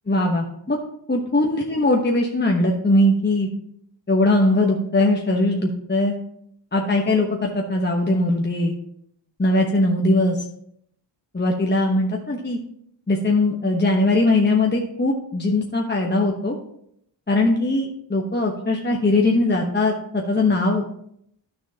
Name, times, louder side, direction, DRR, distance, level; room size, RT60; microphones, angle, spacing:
voice 1, 0.1-0.8 1.1-3.5 4.1-6.1 6.7-8.7 9.4-10.4 11.3-12.6 13.1-16.6 17.3-20.8, left 2 dB, 25° left, 0 dB, 1.0 m, -20 dB
10.5 x 6.2 x 2.8 m, 0.72 s
cardioid pair, 55°, 44 cm